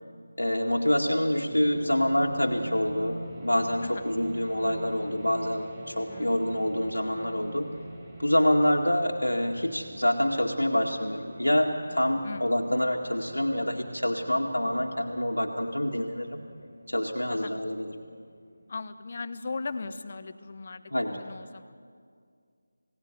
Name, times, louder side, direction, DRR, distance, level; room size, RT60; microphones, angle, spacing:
voice 1, 0.4-7.7 8.2-16.4 16.9-18.0 20.9-21.2, left 1 dB, 85° left, 0 dB, 2.2 m, -26 dB
sound 1, 1.5-19.2, right 1 dB, 10° right, 5.6 m, -45 dB
voice 2, 6.1-6.4 12.2-12.4 17.3-17.5 18.7-21.6, left 3 dB, 40° left, 11 dB, 1.2 m, -38 dB
29.0 x 18.0 x 9.6 m, 2.2 s
figure-of-eight pair, 160°, 0 cm